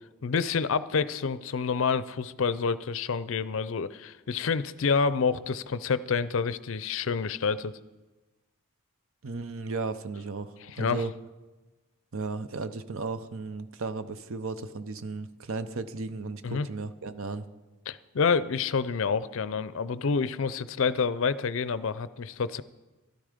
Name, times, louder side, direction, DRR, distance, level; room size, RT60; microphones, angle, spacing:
voice 1, 0.2-7.7 10.6-11.0 16.4-16.7 17.9-22.6, left 5 dB, 60° left, 16 dB, 0.5 m, -28 dB
voice 2, 9.2-11.1 12.1-17.4, right 3 dB, 65° right, 12 dB, 0.7 m, -35 dB
12.5 x 12.0 x 5.0 m, 1.1 s
head